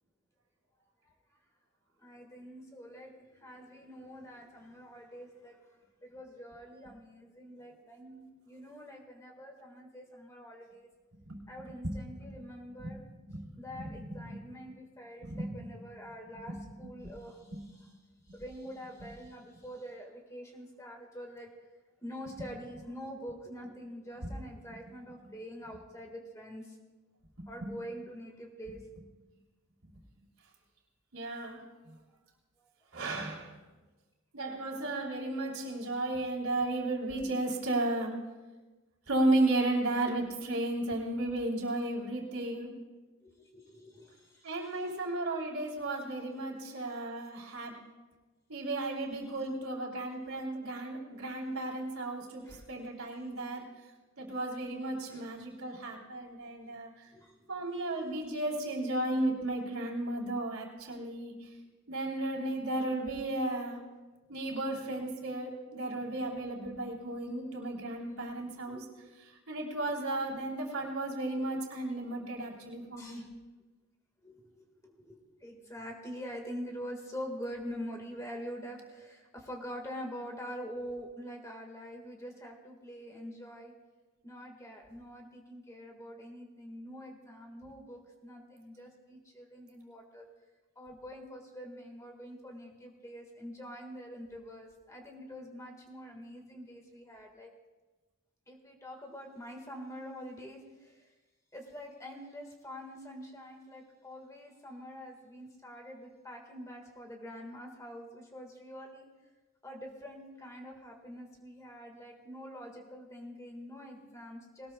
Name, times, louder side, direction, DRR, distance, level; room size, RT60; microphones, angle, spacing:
voice 1, 2.0-5.6 6.0-10.9 11.5-13.0 13.6-17.5 18.3-21.5 22.0-26.8 27.5-28.9 32.6-32.7 40.1-40.2 43.2-44.5 52.4-52.7 53.5-53.7 55.1-55.3 57.1-57.4 66.0-66.1 68.7-68.9 73.0-73.3 74.2-83.7 84.2-90.2 90.7-97.5 98.5-101.0 101.5-109.1 109.6-114.7, equal, 15° left, 2 dB, 1.6 m, -45 dB
voice 2, 13.3-14.4 15.2-15.7 16.3-17.1 17.5-17.6 24.2-24.3 24.7-24.8 25.2-25.3 27.4-27.7 29.8-29.9 31.1-31.9 32.9-33.6 34.3-38.2 39.1-42.7 44.4-47.8 48.5-53.6 54.2-57.1 57.5-61.3 61.9-63.8 64.3-68.8 69.5-73.2, right 2 dB, 80° right, -2 dB, 3.0 m, -34 dB
20.5 x 19.0 x 2.3 m, 1.2 s
head